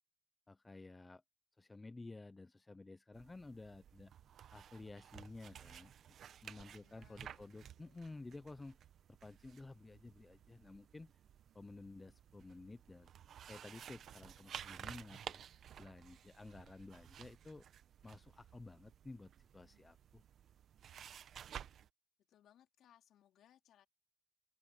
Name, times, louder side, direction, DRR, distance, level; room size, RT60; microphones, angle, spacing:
voice 1, 0.5-1.2 1.6-4.1 4.5-8.8 9.1-11.1 11.5-13.1 13.5-15.4 15.8-17.6 18.0-20.2, left 3 dB, 20° left, 0.7 m, -53 dB
sound 1, 3.1-21.9, right 9 dB, 65° right, 1.0 m, -54 dB
voice 2, 6.8-8.2 22.3-23.9, left 11 dB, 75° left, 3.8 m, -69 dB
open air
cardioid pair, 90°, 0 cm